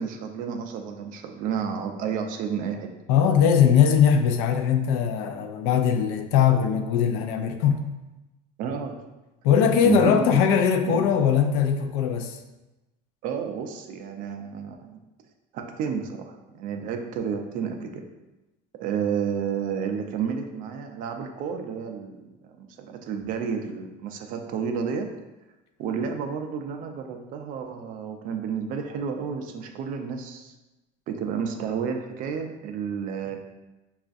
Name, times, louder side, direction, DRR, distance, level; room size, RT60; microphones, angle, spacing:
voice 1, 0.0-2.9 8.6-9.0 9.5-10.4 10.9-11.0 13.2-15.0 15.5-18.0 18.8-25.1 25.8-30.5 31.1-33.4, right 7 dB, 45° right, 5 dB, 0.4 m, -31 dB
voice 2, 3.1-7.9 9.4-12.4, left 8 dB, 75° left, 6 dB, 0.5 m, -20 dB
5.4 x 2.4 x 2.5 m, 1.0 s
cardioid pair, 160°, 20 cm